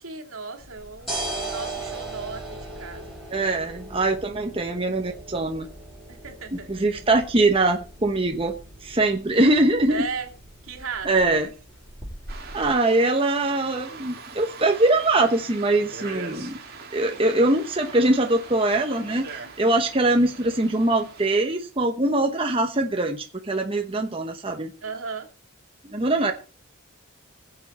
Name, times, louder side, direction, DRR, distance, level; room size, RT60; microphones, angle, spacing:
voice 1, 0.0-3.2 6.1-6.7 9.9-10.3 10.6-11.3 17.0-17.2 18.7-19.5 24.8-25.3, right 5 dB, 80° right, 2.4 m, -36 dB
sound 1, 0.6-12.7, right 2 dB, ahead, 5.8 m, -38 dB
voice 2, 3.3-5.7 6.5-8.5 8.8-10.0 11.0-11.5 12.5-16.6 16.9-24.7 25.9-26.3, right 2 dB, 25° right, 1.0 m, -22 dB
sound 2, 12.3-21.2, right 4 dB, 45° right, 2.4 m, -42 dB
20.5 x 7.3 x 4.2 m
head